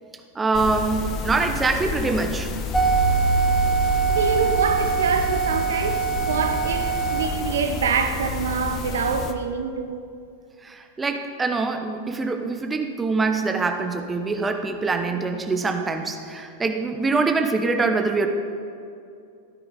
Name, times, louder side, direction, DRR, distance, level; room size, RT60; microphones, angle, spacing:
voice 1, 0.3-2.6 10.6-18.3, right 3 dB, 15° right, 1.0 m, -24 dB
sound 1, 0.5-9.3, left 5 dB, 35° left, 1.0 m, -31 dB
sound 2, 2.7-7.3, right 5 dB, 5° left, 1.3 m, -22 dB
voice 2, 4.1-10.0, right 6 dB, 65° right, 0.8 m, -25 dB
16.0 x 9.7 x 5.0 m
figure-of-eight pair, 90°, 0 cm